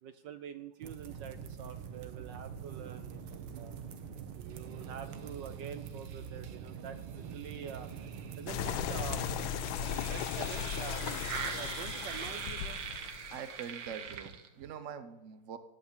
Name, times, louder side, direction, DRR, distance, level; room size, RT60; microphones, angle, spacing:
voice 1, 0.0-3.7 4.3-7.9 8.4-9.2 9.8-12.8, right 8 dB, 70° right, 11 dB, 1.3 m, -46 dB
sound 1, 0.8-14.7, right 7 dB, 90° right, 2.1 m, -43 dB
sound 2, 8.5-13.9, left 10 dB, 80° left, 1.6 m, -37 dB
voice 2, 13.3-15.6, right 7 dB, 45° right, 12 dB, 1.1 m, -44 dB
16.5 x 8.4 x 8.7 m, 1.0 s
omnidirectional pair, 2.2 m